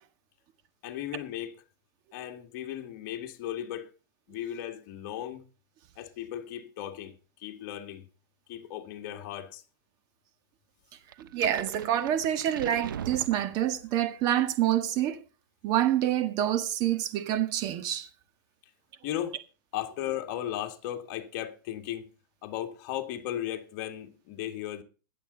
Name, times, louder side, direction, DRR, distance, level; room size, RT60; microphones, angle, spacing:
voice 1, 0.8-1.5 2.1-3.9 4.3-5.4 6.0-7.2 7.4-8.1 8.5-9.6 19.0-19.4 19.7-22.1 22.4-24.8, left 11 dB, 50° left, 2.0 m, -36 dB
sound 1, 11.1-14.0, right 9 dB, 90° right, 1.0 m, -41 dB
voice 2, 11.2-15.2 15.6-18.1, right 11 dB, 40° right, 1.6 m, -27 dB
21.5 x 8.0 x 4.0 m
supercardioid pair, 145°, 11 cm